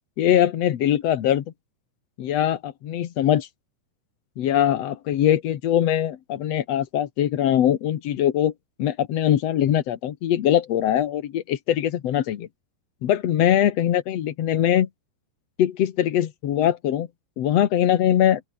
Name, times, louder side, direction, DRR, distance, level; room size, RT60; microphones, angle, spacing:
voice 1, 0.2-1.4 2.2-3.5 4.4-8.5 8.8-12.5 13.0-14.9 15.6-17.1 17.4-18.4, left 11 dB, 80° left, 1.4 m, -22 dB
open air
omnidirectional pair, 5.0 m